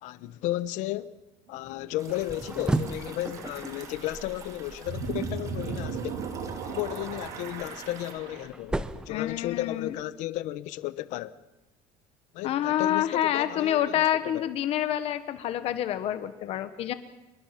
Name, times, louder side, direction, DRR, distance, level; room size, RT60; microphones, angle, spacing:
voice 1, 0.0-1.2 1.5-6.3 6.7-8.8 9.1-11.4 12.3-14.0 14.3-14.5, left 15 dB, 65° left, 1.0 m, -34 dB
sound 1, 1.5-8.5, right 5 dB, 60° right, 3.8 m, -38 dB
sound 2, 2.0-8.1, right 5 dB, 25° right, 2.1 m, -48 dB
sound 3, 2.1-5.2 7.4-10.0, right 2 dB, 5° right, 0.8 m, -35 dB
voice 2, 9.1-9.9 12.4-16.9, left 11 dB, 45° left, 1.2 m, -27 dB
27.5 x 22.5 x 5.9 m
cardioid pair, 170°, 14 cm